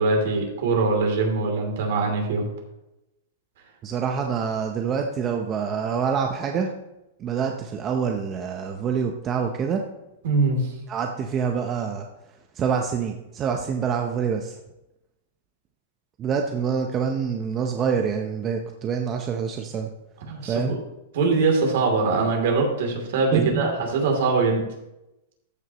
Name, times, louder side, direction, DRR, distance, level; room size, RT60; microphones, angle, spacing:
voice 1, 0.0-2.4 10.2-10.6 20.2-20.8 21.1-24.6, right 3 dB, 65° right, 1 dB, 3.0 m, -22 dB
voice 2, 3.8-6.7 7.2-9.8 10.9-12.1 12.6-14.5 16.2-19.9 20.4-20.7 23.3-23.8, right 6 dB, 25° right, 3 dB, 0.7 m, -26 dB
13.5 x 6.3 x 3.0 m, 0.91 s
hypercardioid pair, 145°, 0 cm